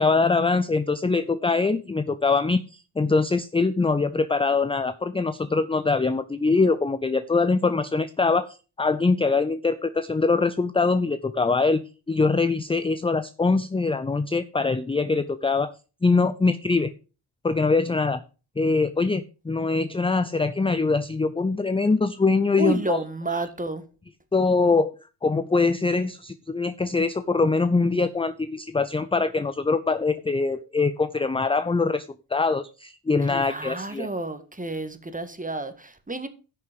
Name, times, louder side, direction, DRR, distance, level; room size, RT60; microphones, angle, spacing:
voice 1, 0.0-11.8 12.1-15.7 16.0-16.9 17.4-18.2 18.6-23.0 24.3-24.9 25.2-34.1, left 4 dB, 10° left, 0.5 m, -23 dB
voice 2, 22.6-23.8 33.3-36.3, right 3 dB, 15° right, 1.7 m, -30 dB
10.5 x 6.6 x 5.2 m
cardioid pair, 60°, 49 cm